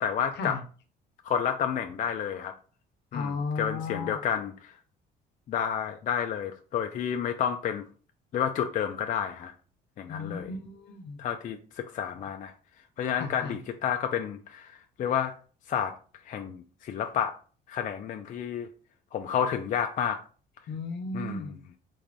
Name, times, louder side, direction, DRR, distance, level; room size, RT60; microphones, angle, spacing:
voice 1, 0.0-0.6 1.2-2.5 3.1-4.7 5.5-7.8 8.3-9.5 10.0-10.5 11.2-12.5 13.0-15.3 15.7-15.9 16.3-17.4 17.7-18.7 19.1-20.2 21.1-21.5, left 8 dB, 45° left, 5 dB, 0.4 m, -30 dB
voice 2, 3.1-4.2 10.1-11.2 13.2-13.6 20.7-21.6, left 3 dB, 70° left, 7 dB, 0.8 m, -35 dB
4.0 x 2.5 x 3.4 m, 0.38 s
cardioid pair, 95°, 19 cm